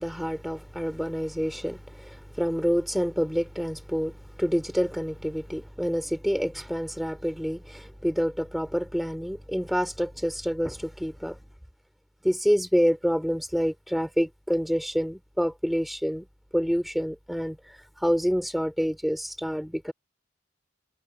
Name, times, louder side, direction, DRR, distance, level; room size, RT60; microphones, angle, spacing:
voice 1, 0.0-11.4 12.2-16.2 16.5-19.9, equal, ahead, 2.6 m, -27 dB
head